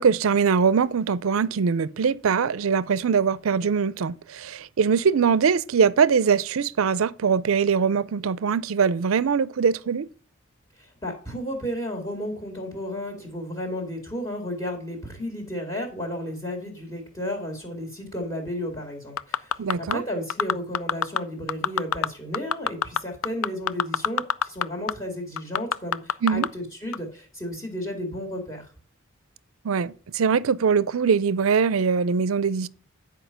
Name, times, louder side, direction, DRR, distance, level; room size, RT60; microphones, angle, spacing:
voice 1, 0.0-10.1 19.6-20.0 26.2-26.5 29.6-32.7, right 6 dB, 70° right, 0.5 m, -22 dB
voice 2, 10.8-28.7, equal, 20° left, 2.1 m, -33 dB
sound 1, 19.2-19.9 20.3-21.2 21.5-22.1 22.3-24.6 24.9-25.0 25.4-26.5 26.9-27.0, left 8 dB, 80° left, 0.4 m, -23 dB
10.0 x 4.9 x 5.7 m
head